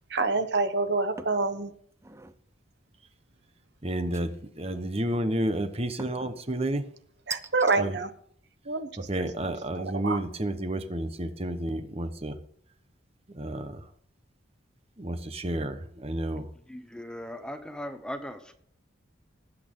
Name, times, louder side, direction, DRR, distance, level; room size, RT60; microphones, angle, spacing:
voice 1, 0.1-1.7 7.3-8.1 8.7-9.1 9.4-10.2, right 3 dB, 60° right, 9 dB, 1.1 m, -27 dB
sound 1, 1.2-1.5 1.9-2.4 4.1-4.7 6.0-6.4 7.3-7.8, right 2 dB, 15° right, 0.5 m, -40 dB
voice 2, 3.8-6.9 7.8-8.0 9.1-12.4 13.3-13.9 15.0-16.5, right 1 dB, 30° right, 9 dB, 1.2 m, -31 dB
voice 3, 16.7-18.5, equal, 5° left, 7 dB, 0.9 m, -38 dB
19.0 x 8.6 x 3.8 m, 0.63 s
head